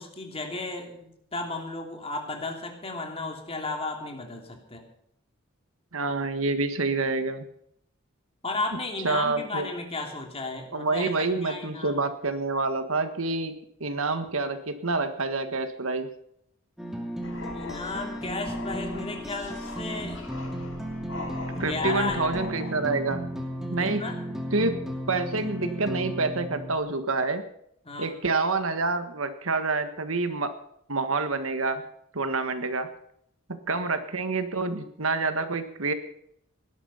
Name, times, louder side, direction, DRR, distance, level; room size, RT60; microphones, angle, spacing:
voice 1, 0.0-4.8 8.4-12.0 17.5-20.3 21.1-22.2 23.5-24.2 27.8-28.1, left 3 dB, 25° left, 3 dB, 3.0 m, -34 dB
voice 2, 5.9-7.5 9.0-9.7 10.7-13.6 13.8-16.1 21.6-23.2 23.7-24.0 24.5-24.8 25.1-27.5 28.0-30.5 30.9-31.8 32.1-32.9 33.7-35.9, right 3 dB, 75° right, 10 dB, 1.6 m, -27 dB
sound 1, 16.8-26.8, equal, ahead, 2.5 m, -35 dB
sound 2, 17.2-23.2, left 2 dB, 60° left, 3.1 m, -40 dB
18.5 x 12.0 x 5.6 m, 0.72 s
head